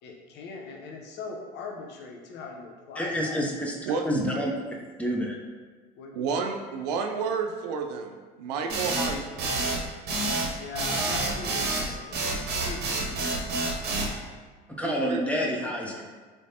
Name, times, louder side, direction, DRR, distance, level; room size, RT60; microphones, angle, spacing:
voice 1, 0.0-3.4 6.0-6.2 10.6-13.4, left 4 dB, 60° left, 1 dB, 0.7 m, -40 dB
voice 2, 3.0-4.5 5.0-5.4 14.8-16.1, equal, 5° left, -1 dB, 0.6 m, -28 dB
voice 3, 6.1-9.4 14.8-15.7, right 5 dB, 85° right, 4 dB, 0.4 m, -31 dB
sound 1, 8.7-14.1, right 3 dB, 55° right, 0.8 m, -28 dB
3.3 x 3.1 x 2.8 m, 1.4 s
hypercardioid pair, 75°, 20 cm